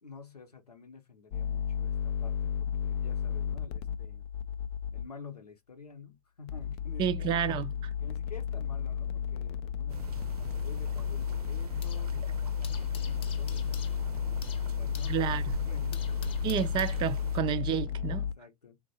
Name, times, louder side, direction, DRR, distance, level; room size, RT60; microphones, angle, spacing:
voice 1, 0.0-2.5 2.8-4.3 4.9-7.4 8.0-13.9 14.6-16.3 17.4-17.7 18.1-18.8, left 5 dB, 85° left, 1.0 m, -50 dB
sound 1, 1.3-5.0 6.5-18.3, left 8 dB, 45° left, 0.4 m, -33 dB
voice 2, 7.0-7.9 15.1-15.5 16.4-18.3, right 10 dB, 25° right, 0.3 m, -30 dB
sound 2, 9.9-17.4, right 6 dB, 75° right, 0.5 m, -43 dB
sound 3, 10.0-12.2 12.4-17.5, left 8 dB, 30° left, 0.8 m, -50 dB
3.8 x 2.6 x 2.7 m
figure-of-eight pair, 90°, 20 cm